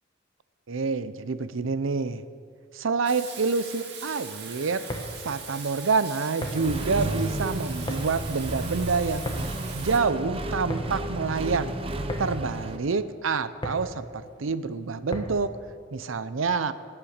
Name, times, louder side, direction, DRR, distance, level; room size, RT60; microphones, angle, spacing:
voice 1, 0.7-2.2 2.7-4.8 5.2-9.3 9.7-11.7 12.2-15.5 15.9-16.7, right 4 dB, 80° right, 14 dB, 0.6 m, -27 dB
Water tap faucet / Sink (filling or washing), 3.0-10.0, right 6 dB, 55° right, 2.1 m, -41 dB
sound 1, 4.9-15.6, equal, 25° left, 1.3 m, -38 dB
Accelerating revving vroom, 6.5-12.8, right 1 dB, 30° right, 0.8 m, -32 dB
17.5 x 8.8 x 6.6 m, 2.3 s
head